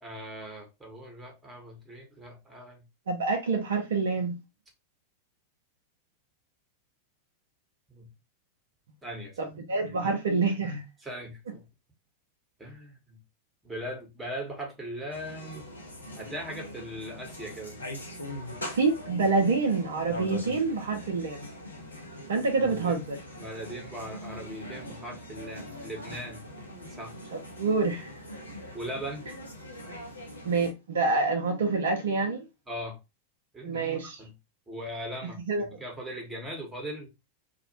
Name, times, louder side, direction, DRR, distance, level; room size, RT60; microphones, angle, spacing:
voice 1, 0.0-2.9 7.9-8.1 9.0-9.5 10.0-10.1 11.0-11.7 12.6-13.2 13.6-15.7 16.2-17.8 22.6-23.0 23.4-27.2 28.7-29.3 32.7-33.0 33.5-34.3 34.7-37.1, equal, 10° right, 0.9 m, -40 dB
voice 2, 3.1-4.4 9.4-10.8 18.6-21.5 22.3-23.2 27.3-28.2 30.4-32.5 33.6-34.2 35.5-35.8, right 4 dB, 65° right, 0.5 m, -27 dB
sound 1, 15.1-30.7, left 1 dB, 80° left, 0.6 m, -42 dB
2.3 x 2.1 x 2.7 m
figure-of-eight pair, 90°, 0 cm